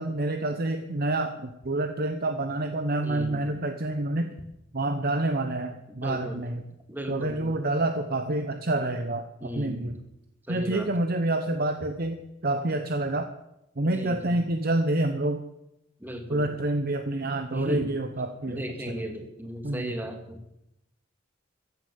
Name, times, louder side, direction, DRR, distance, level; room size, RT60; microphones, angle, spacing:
voice 1, 0.0-4.3 4.7-6.6 7.1-9.9 10.5-13.3 13.8-15.4 16.3-19.0 19.6-20.0, right 2 dB, 50° right, 7 dB, 1.0 m, -28 dB
voice 2, 3.0-3.6 5.9-6.4 6.9-7.6 9.4-9.9 10.5-10.9 13.8-14.3 16.0-16.5 17.5-17.9 18.5-20.4, equal, 10° right, 5 dB, 2.2 m, -36 dB
15.0 x 10.0 x 7.1 m, 0.86 s
head